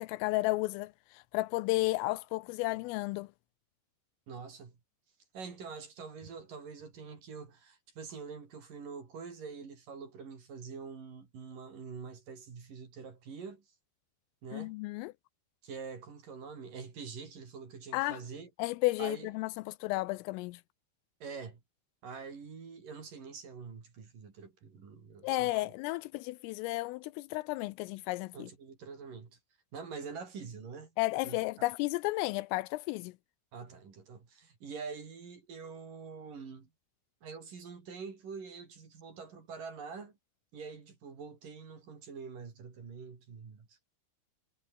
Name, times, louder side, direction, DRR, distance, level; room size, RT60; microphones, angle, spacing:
voice 1, 0.0-3.3 14.5-15.1 17.9-18.2 18.6-20.6 25.2-28.5 31.0-33.1, left 21 dB, 85° left, 3.2 m, -33 dB
voice 2, 4.3-4.8 5.3-13.6 14.4-14.8 15.6-18.5 19.0-19.3 21.2-21.6 22.0-25.7 28.3-29.4 29.7-30.9 31.2-31.4 33.5-36.7 37.2-40.1 40.5-43.8, right 5 dB, 45° right, 5.3 m, -45 dB
omnidirectional pair, 6.0 m